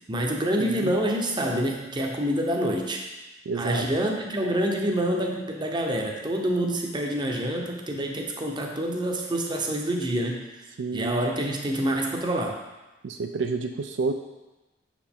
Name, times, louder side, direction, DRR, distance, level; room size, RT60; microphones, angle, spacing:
voice 1, 0.1-3.0 3.6-10.4 10.9-12.6, right 1 dB, 25° right, 1 dB, 0.7 m, -27 dB
voice 2, 0.6-0.9 3.5-3.8 10.8-11.1 13.0-14.1, right 4 dB, 70° right, 6 dB, 0.4 m, -29 dB
6.4 x 5.0 x 3.6 m, 1.1 s
head